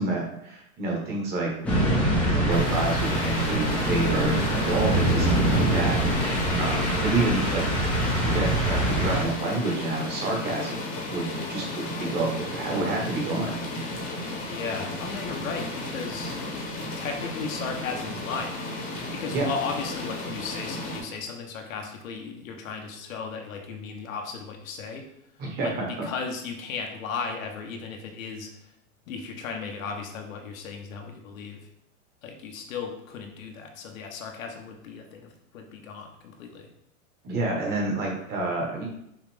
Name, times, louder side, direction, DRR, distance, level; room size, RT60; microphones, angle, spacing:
voice 1, 0.0-1.5 2.2-7.6 8.2-10.8 11.1-13.5 19.3-19.5 25.4-25.9 37.2-38.9, right 2 dB, 25° right, -1 dB, 1.0 m, -28 dB
sound 1, 1.6-9.2, right 1 dB, 5° left, 0.4 m, -24 dB
sound 2, 2.5-21.0, left 1 dB, 20° left, 0.9 m, -34 dB
voice 2, 14.5-16.3 17.0-18.6 19.1-25.1 25.6-28.5 29.1-31.7 32.2-36.7, left 5 dB, 75° left, 3 dB, 1.0 m, -35 dB
5.6 x 2.6 x 3.4 m, 0.78 s
supercardioid pair, 145°, 41 cm